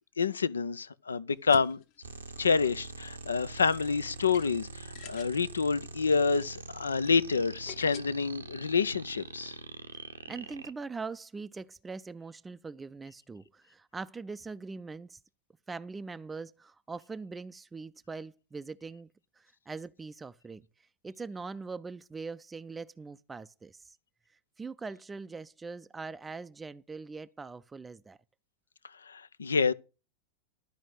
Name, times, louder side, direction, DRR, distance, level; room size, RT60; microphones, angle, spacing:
voice 1, 0.2-1.8 2.4-9.5 29.1-29.7, left 5 dB, 75° left, 0.5 m, -28 dB
sound 1, 1.3-8.0, left 10 dB, 45° left, 1.1 m, -51 dB
sound 2, 2.0-10.7, right 4 dB, 75° right, 0.9 m, -44 dB
voice 2, 10.3-15.2 15.7-19.1 19.4-20.7 21.0-24.0 24.6-28.2, right 4 dB, 15° right, 0.5 m, -42 dB
12.5 x 5.1 x 7.7 m
figure-of-eight pair, 90°, 0 cm